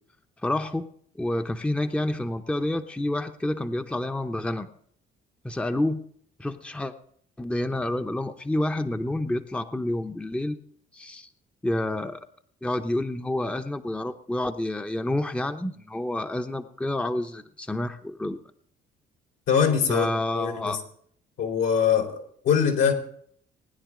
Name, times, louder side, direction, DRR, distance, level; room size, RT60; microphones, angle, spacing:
voice 1, 0.4-0.9 1.2-4.7 5.4-6.0 6.4-6.9 7.4-10.6 10.9-11.3 11.6-12.3 12.6-18.4 19.9-20.8, left 1 dB, 5° left, 7 dB, 0.8 m, -28 dB
voice 2, 19.5-20.1 20.3-20.8 21.4-22.9, left 7 dB, 80° left, 0 dB, 4.0 m, -23 dB
20.0 x 10.0 x 3.8 m, 0.62 s
cardioid pair, 90°, 19 cm